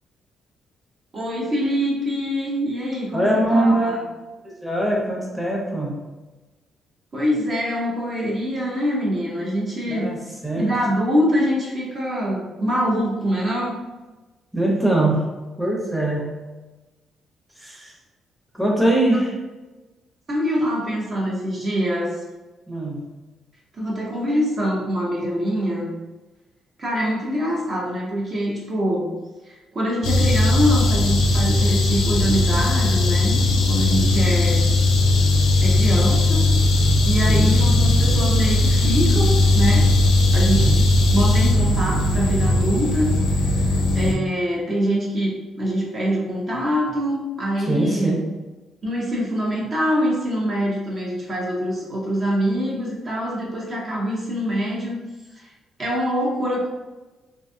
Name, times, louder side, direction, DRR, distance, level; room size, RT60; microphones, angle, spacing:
voice 1, 1.1-4.0 7.1-10.1 10.5-13.8 20.3-22.1 23.7-25.9 26.8-29.1 29.7-33.4 33.7-34.7 35.6-36.5 37.1-39.9 40.3-40.7 41.1-43.1 43.5-43.6 43.9-48.1 48.8-55.0 55.4-55.5 55.8-56.7, equal, 40° right, -3 dB, 0.6 m, -24 dB
voice 2, 3.1-4.1 4.4-6.0 9.9-10.2 10.4-10.7 14.5-16.4 17.6-17.9 18.5-19.4 22.7-23.0 37.2-37.5 40.5-40.8 47.6-48.2, right 1 dB, 5° right, -3 dB, 0.7 m, -22 dB
sound 1, 30.0-44.1, left 2 dB, 85° left, 0.4 m, -18 dB
2.6 x 2.2 x 2.6 m, 1.2 s
cardioid pair, 90°, 0 cm